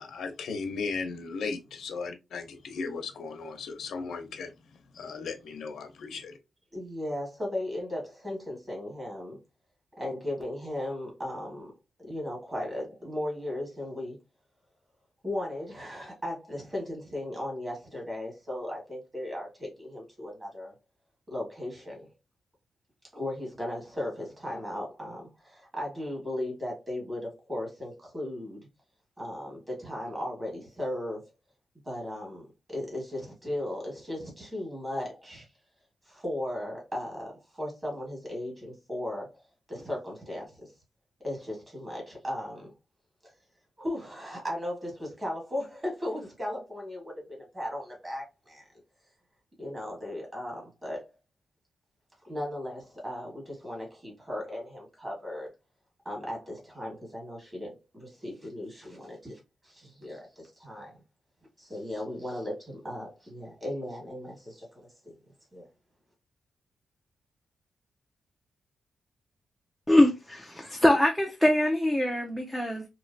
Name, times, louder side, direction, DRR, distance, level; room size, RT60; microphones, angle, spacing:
voice 1, 0.0-4.5 4.9-6.4, left 4 dB, 85° left, 0.7 m, -36 dB
voice 2, 6.7-9.4 10.0-11.7 12.0-14.2 15.2-20.7 21.3-22.1 23.1-28.7 29.2-31.3 31.8-35.5 36.0-39.4 39.7-40.7 41.2-42.7 43.2-43.3 43.8-48.6 49.6-51.1 52.2-55.5 56.0-61.0 61.6-65.2 65.5-65.7, left 1 dB, 20° right, 1.6 m, -36 dB
voice 3, 69.9-72.9, left 1 dB, ahead, 0.4 m, -23 dB
3.0 x 2.9 x 2.6 m
wide cardioid pair, 160°, 0 cm